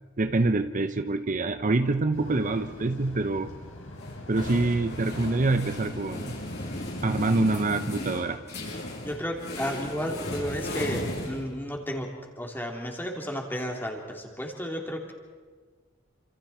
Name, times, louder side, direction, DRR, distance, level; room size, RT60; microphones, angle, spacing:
voice 1, 0.2-3.5 4.3-6.4 7.0-8.4, right 2 dB, 40° right, 9 dB, 0.7 m, -26 dB
sound 1, 2.1-7.3, left 1 dB, 90° left, 4.8 m, -43 dB
sound 2, 4.0-11.9, left 1 dB, 60° left, 7.1 m, -36 dB
voice 2, 9.0-12.1 12.4-15.1, equal, 10° left, 0 dB, 3.4 m, -33 dB
29.0 x 27.0 x 4.4 m, 1.5 s
head